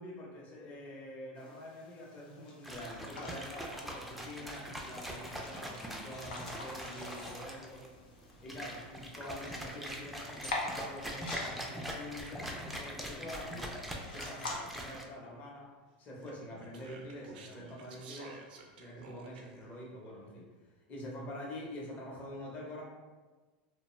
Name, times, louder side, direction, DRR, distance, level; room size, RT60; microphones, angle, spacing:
voice 1, 0.0-7.9 8.2-15.7 16.0-18.4 18.8-20.5 20.9-22.8, left 1 dB, 35° left, -3 dB, 0.8 m, -46 dB
sound 1, 1.4-14.5, left 2 dB, 85° left, 0.5 m, -47 dB
sound 2, 2.6-15.1, equal, ahead, 0.3 m, -43 dB
Speech, 16.2-19.7, right 4 dB, 85° right, 0.4 m, -52 dB
2.3 x 2.2 x 3.0 m, 1.3 s
supercardioid pair, 120°, 5 cm